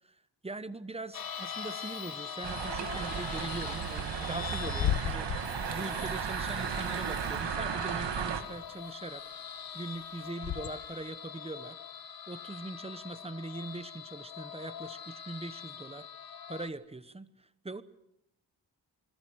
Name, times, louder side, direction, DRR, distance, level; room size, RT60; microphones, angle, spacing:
voice 1, 0.4-9.2 9.7-11.8 12.3-16.1 16.5-17.8, right 2 dB, 15° right, 13 dB, 1.1 m, -41 dB
sound 1, 1.1-16.7, left 7 dB, 60° left, 1.3 m, -43 dB
Bird / Wind, 2.4-11.1, left 10 dB, 80° left, 1.1 m, -39 dB
sound 2, 2.4-8.4, right 8 dB, 90° right, 2.1 m, -35 dB
26.5 x 22.0 x 6.4 m, 0.82 s
wide cardioid pair, 115°, 41 cm